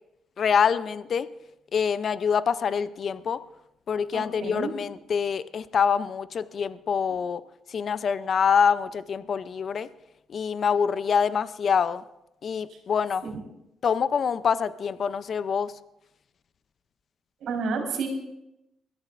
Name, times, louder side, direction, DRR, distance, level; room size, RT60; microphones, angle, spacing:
voice 1, 0.4-1.3 1.7-3.4 3.9-7.4 7.7-9.9 10.3-12.0 12.4-13.2 13.8-15.7, left 6 dB, 55° left, 15 dB, 0.5 m, -25 dB
voice 2, 4.1-4.7 13.2-13.3 17.4-18.1, right 5 dB, 75° right, 1 dB, 4.2 m, -30 dB
22.0 x 14.0 x 2.5 m, 0.87 s
cardioid pair, 90°, 0 cm